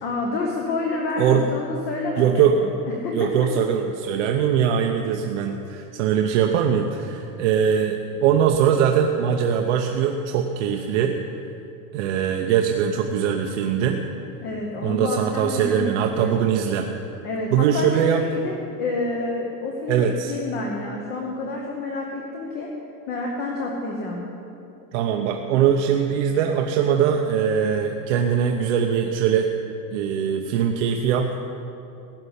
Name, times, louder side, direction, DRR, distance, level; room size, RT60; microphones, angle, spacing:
voice 1, 0.0-2.3 2.6-2.7 3.0-3.5 14.4-16.4 17.2-22.7 23.1-24.2, left 3 dB, 20° left, 0 dB, 0.9 m, -28 dB
voice 2, 2.2-2.6 3.1-11.1 11.9-14.0 14.8-16.9 17.5-18.2 19.9-20.4 24.9-29.5 29.9-31.3, right 8 dB, 45° right, 3 dB, 0.8 m, -21 dB
16.0 x 6.7 x 9.9 m, 2.7 s
supercardioid pair, 180°, 49 cm